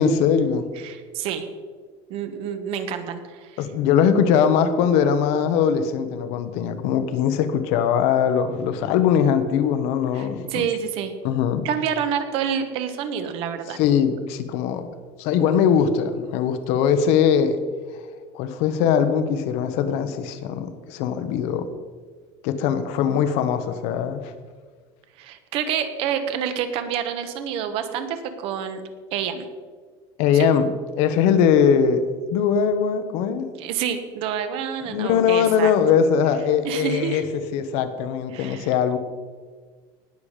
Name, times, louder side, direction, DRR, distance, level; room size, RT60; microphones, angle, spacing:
voice 1, 0.0-0.7 3.6-10.7 11.2-11.6 13.7-14.9 15.2-17.6 18.3-21.7 22.4-24.3 30.2-30.7 31.0-32.0 32.3-33.5 34.9-37.2 37.5-39.0, left 7 dB, 55° left, 10 dB, 1.2 m, -21 dB
voice 2, 0.8-1.5 2.1-3.6 10.1-11.1 11.6-13.8 25.2-28.8 29.1-29.4 33.6-35.7 36.6-37.2 38.3-38.7, right 8 dB, 45° right, 8 dB, 1.3 m, -28 dB
19.0 x 7.1 x 5.1 m, 1.5 s
cardioid pair, 175°, 13 cm